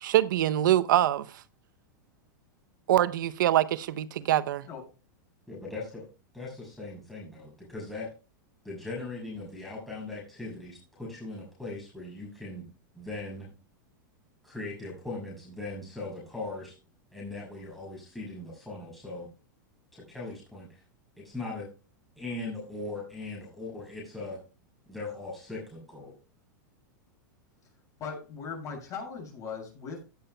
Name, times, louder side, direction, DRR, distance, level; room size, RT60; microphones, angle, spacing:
voice 1, 0.0-1.3 2.9-4.6, right 13 dB, 75° right, 0.7 m, -24 dB
voice 2, 5.5-6.0 6.3-8.1 8.6-12.7 12.9-13.5 14.4-16.8 17.1-19.3 19.9-20.8 21.2-21.7 22.2-24.4 24.9-26.1, left 2 dB, ahead, 6.3 m, -39 dB
voice 3, 28.0-30.0, left 5 dB, 30° left, 6.9 m, -39 dB
17.0 x 8.5 x 2.2 m
hypercardioid pair, 120°, 11 cm